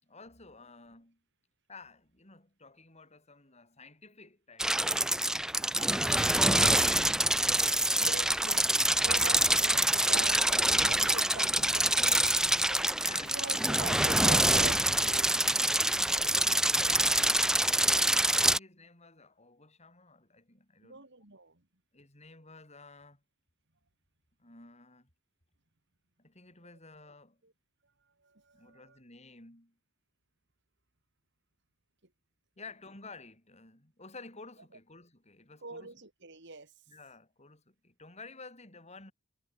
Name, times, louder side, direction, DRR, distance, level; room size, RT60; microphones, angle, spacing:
voice 1, 0.0-1.2 1.7-5.4 5.7-7.1 7.4-8.2 12.8-13.6 16.6-18.0 18.3-21.1 21.9-23.2 24.4-25.1 26.2-27.4 28.5-29.8 32.6-36.0 36.9-39.1, left 3 dB, 30° left, 6.7 m, -52 dB
sound 1, 4.6-18.6, right 1 dB, 5° right, 0.4 m, -26 dB
voice 2, 8.0-8.6 9.0-12.9 13.2-17.0 20.8-21.6 27.4-27.5 28.2-29.0 35.6-36.7, right 3 dB, 55° right, 3.8 m, -44 dB
head